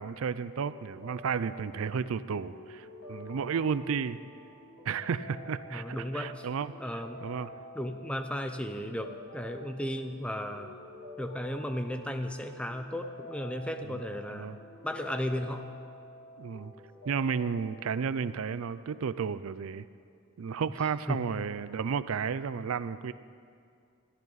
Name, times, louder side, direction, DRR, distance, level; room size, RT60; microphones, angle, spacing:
voice 1, 0.0-4.2 4.9-6.7 7.2-7.5 13.9-14.0 14.3-14.6 16.4-16.7 17.1-19.8 20.4-23.1, right 6 dB, 75° right, 15 dB, 0.4 m, -32 dB
sound 1, 0.6-17.9, left 1 dB, 55° left, 2.8 m, -49 dB
voice 2, 5.7-6.5 6.8-7.2 7.7-10.7 11.2-14.5 14.8-15.7 21.1-21.3, equal, 5° left, 7 dB, 0.7 m, -35 dB
21.0 x 14.0 x 4.0 m, 2.3 s
head